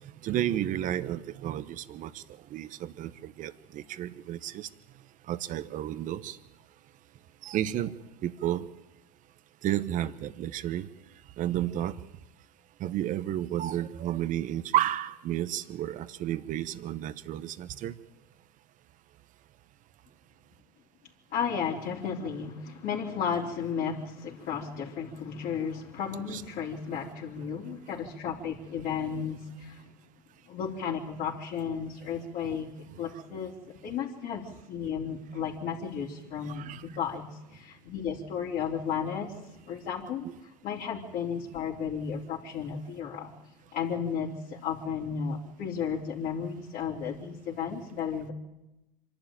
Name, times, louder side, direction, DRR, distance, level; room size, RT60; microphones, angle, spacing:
voice 1, 0.2-2.2 2.5-4.7 5.3-6.4 7.4-7.9 8.2-8.7 9.6-10.9 11.4-11.9 12.8-17.9 26.3-26.4 36.5-36.8 40.2-40.4, right 12 dB, 50° right, 14 dB, 1.1 m, -32 dB
voice 2, 21.3-29.9 30.5-39.3 39.7-43.3 43.7-48.3, left 7 dB, 55° left, -5 dB, 3.7 m, -34 dB
26.0 x 12.0 x 9.1 m, 0.98 s
hypercardioid pair, 90°, 18 cm